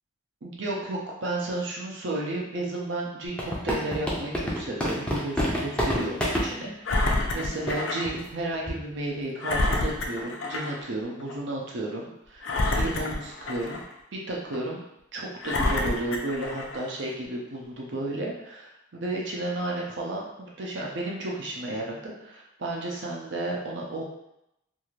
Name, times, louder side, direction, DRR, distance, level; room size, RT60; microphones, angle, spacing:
voice 1, 0.4-13.8 14.1-14.8 15.1-24.0, right 2 dB, 65° right, -3 dB, 0.6 m, -33 dB
sound 1, 3.3-6.5 7.2-7.3 7.7-7.8 8.1-8.3 8.7-8.9, equal, 5° left, 0.4 m, -27 dB
Engine, 6.8-8.1 8.5-8.6 9.4-10.8 11.2-11.3 12.4-13.9 14.5-14.6 15.4-16.9 17.6-17.7, left 2 dB, 65° left, 0.4 m, -28 dB
2.6 x 2.4 x 3.1 m, 0.83 s
head